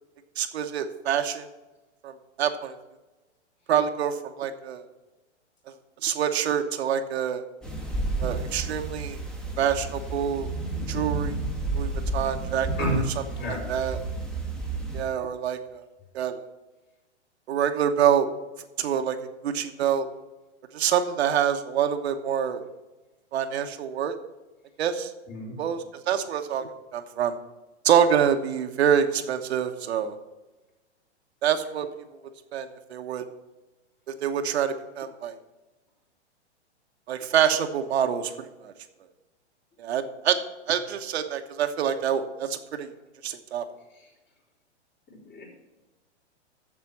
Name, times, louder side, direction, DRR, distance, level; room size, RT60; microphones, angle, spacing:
voice 1, 0.4-1.5 2.0-2.1 2.4-2.7 3.7-4.8 6.0-7.4 8.2-9.2 9.6-10.5 10.9-11.3 11.7-12.9 13.7-14.0 14.9-15.8 16.1-16.3 17.5-18.3 18.8-19.2 19.4-20.1 20.7-22.6 23.3-24.1 24.8-25.1 25.6-27.4 27.8-30.1 31.4-31.9 32.5-33.2 34.2-35.3 37.1-38.7 39.8-40.4 40.7-42.9 43.2-43.6, right 8 dB, 65° right, 6 dB, 1.1 m, -26 dB
sound 1, 7.6-15.0, right 2 dB, ahead, 1.4 m, -31 dB
voice 2, 13.4-13.7 25.3-25.6 43.9-44.1 45.3-45.5, equal, 30° left, -1 dB, 4.1 m, -30 dB
7.4 x 7.1 x 7.3 m, 1.1 s
hypercardioid pair, 125°, 35 cm